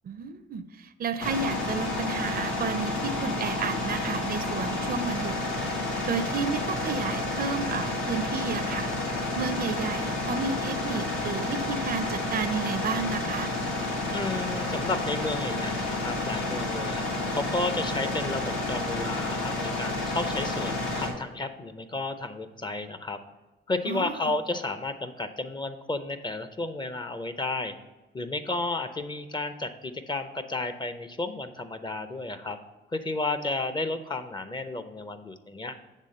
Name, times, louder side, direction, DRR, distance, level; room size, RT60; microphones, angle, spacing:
voice 1, 0.0-5.4 6.0-8.9 9.4-13.5 23.9-24.3, right 5 dB, 50° right, 12 dB, 0.5 m, -32 dB
sound 1, 1.2-21.1, left 2 dB, 80° left, 1.5 m, -30 dB
voice 2, 14.1-17.0 17.3-23.2 23.7-27.7 28.1-32.6 32.9-35.8, left 2 dB, 20° left, 10 dB, 0.6 m, -32 dB
7.4 x 3.5 x 6.5 m, 1.1 s
cardioid pair, 90°, 20 cm